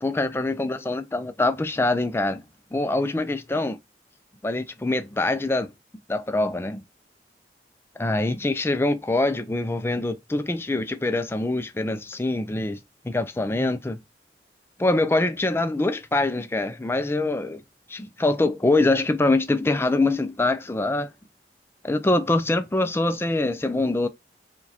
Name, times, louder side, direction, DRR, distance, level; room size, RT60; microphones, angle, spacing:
voice 1, 0.0-2.4 2.7-3.8 4.4-5.7 6.1-6.8 8.0-12.8 13.0-14.0 14.8-17.6 17.9-21.1 21.8-24.1, left 2 dB, 15° left, 0.3 m, -24 dB
4.8 x 2.3 x 4.0 m
head